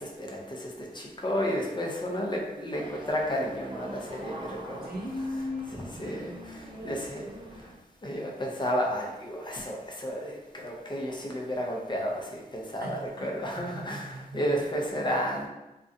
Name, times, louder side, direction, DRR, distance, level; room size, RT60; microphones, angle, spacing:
voice 1, 0.0-4.9 5.7-7.2 8.0-15.5, equal, 30° left, -1 dB, 0.5 m, -32 dB
sound 1, 2.7-7.7, right 1 dB, 30° right, 0.4 m, -45 dB
voice 2, 4.8-7.7 12.8-14.4, left 1 dB, 90° right, -2 dB, 0.6 m, -39 dB
2.4 x 2.2 x 2.5 m, 0.98 s
wide cardioid pair, 65°, 16 cm